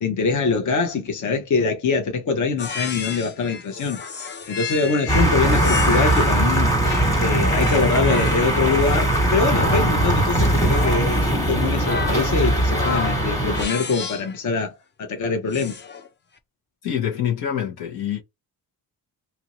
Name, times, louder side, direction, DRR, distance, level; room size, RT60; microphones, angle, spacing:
voice 1, 0.0-4.0 4.5-15.7, left 4 dB, 50° left, 0.9 m, -24 dB
sound 1, 2.6-6.4 6.8-14.4 15.5-16.1, left 5 dB, 30° left, 0.5 m, -32 dB
sound 2, 5.1-13.7, right 1 dB, 10° left, 1.3 m, -20 dB
voice 2, 16.8-18.2, left 9 dB, 90° left, 1.3 m, -25 dB
2.8 x 2.6 x 3.0 m
cardioid pair, 110°, 37 cm